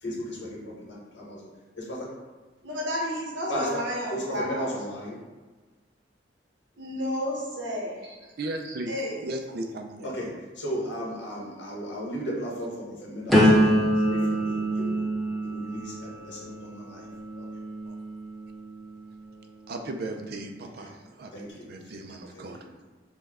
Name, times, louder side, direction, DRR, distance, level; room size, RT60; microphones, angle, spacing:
voice 1, 0.0-1.5 1.7-2.1 3.5-3.7 4.1-5.2 10.0-10.3 10.5-15.0 15.4-17.0 17.4-17.5 20.7-20.8 21.3-22.0 22.3-22.8, equal, 75° left, -4 dB, 1.3 m, -36 dB
voice 2, 2.6-4.7 6.8-8.2 8.6-9.2, equal, 90° right, -3 dB, 1.0 m, -31 dB
voice 3, 8.4-8.9 9.2-10.1 17.9-18.0 19.7-20.9 21.2-22.6, right 2 dB, 55° right, 5 dB, 0.4 m, -36 dB
sound 1, 13.3-19.2 19.7-20.1, equal, ahead, 0.6 m, -25 dB
5.2 x 2.2 x 3.6 m, 1.3 s
head